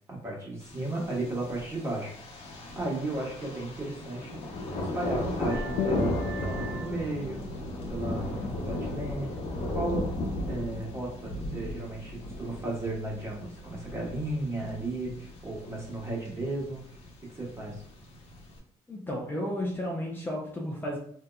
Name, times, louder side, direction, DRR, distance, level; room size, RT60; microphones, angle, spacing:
voice 1, 0.2-2.1 2.7-4.4 4.8-6.1 6.4-7.4 7.9-9.3 9.7-10.0 10.5-16.8 17.3-17.8, right 2 dB, 25° right, -3 dB, 1.3 m, -34 dB
Thunder, 0.6-18.6, left 1 dB, 60° left, 1.0 m, -36 dB
Vehicle horn car horn honking, 5.5-10.5, right 2 dB, 85° right, 1.3 m, -44 dB
sound 1, 5.8-10.8, left 5 dB, 80° left, 0.5 m, -40 dB
voice 2, 18.9-21.0, left 1 dB, 15° left, -2 dB, 0.6 m, -33 dB
3.6 x 2.8 x 2.3 m, 0.62 s
cardioid pair, 105°, 12 cm